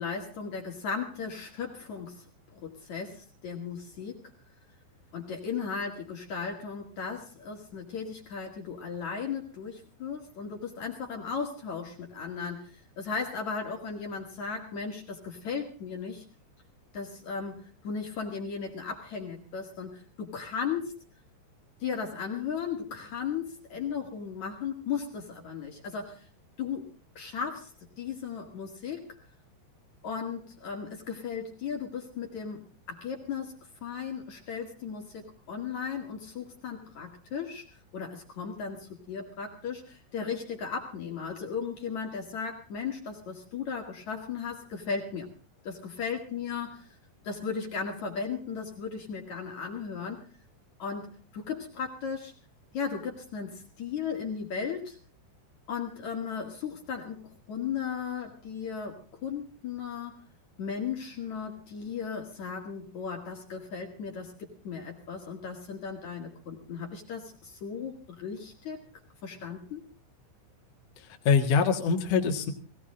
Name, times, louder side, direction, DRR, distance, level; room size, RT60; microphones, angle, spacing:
voice 1, 0.0-2.2 2.5-4.2 5.1-16.2 16.9-20.9 21.8-26.2 26.6-27.7 28.0-29.1 30.0-33.5 33.8-37.6 37.9-45.3 45.6-46.9 47.2-50.2 50.8-52.3 52.7-55.0 55.7-60.1 60.6-68.8 69.2-69.8, left 6 dB, 50° left, 1 dB, 2.6 m, -36 dB
voice 2, 71.0-72.5, left 5 dB, 80° left, 3 dB, 1.4 m, -24 dB
19.0 x 17.0 x 3.8 m, 0.38 s
omnidirectional pair, 5.7 m